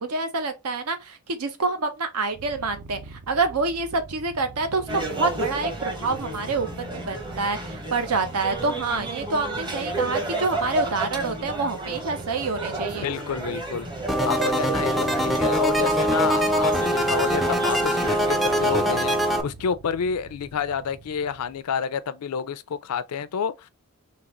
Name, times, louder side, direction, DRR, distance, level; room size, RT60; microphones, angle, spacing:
voice 1, 0.0-13.1, right 3 dB, 85° right, 0.8 m, -27 dB
Purr, 2.3-21.6, right 3 dB, 55° right, 0.6 m, -45 dB
sound 1, 4.9-19.1, right 2 dB, 20° right, 0.8 m, -32 dB
voice 2, 12.9-13.9 14.2-23.7, left 6 dB, 85° left, 0.4 m, -29 dB
sound 2, 14.1-19.4, equal, ahead, 0.4 m, -23 dB
3.7 x 2.9 x 3.0 m
head